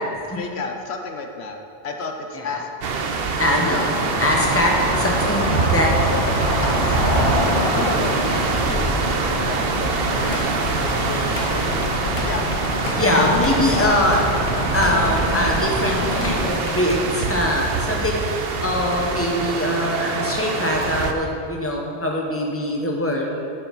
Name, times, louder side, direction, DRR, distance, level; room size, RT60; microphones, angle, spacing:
voice 1, 0.3-3.0 3.5-3.8 6.1-7.3 7.7-13.3 13.6-14.0, left 3 dB, 80° left, 4 dB, 1.1 m, -33 dB
sound 1, 2.8-21.1, right 4 dB, 65° right, 1.0 m, -25 dB
voice 2, 3.4-6.1 12.9-14.2 14.7-23.4, left 1 dB, 15° left, -1 dB, 1.3 m, -22 dB
sound 2, 3.9-16.5, equal, 30° left, 1.9 m, -25 dB
Drum kit / Drum, 10.2-17.4, left 3 dB, 60° left, 1.1 m, -36 dB
11.5 x 7.1 x 5.5 m, 2.6 s
omnidirectional pair, 1.1 m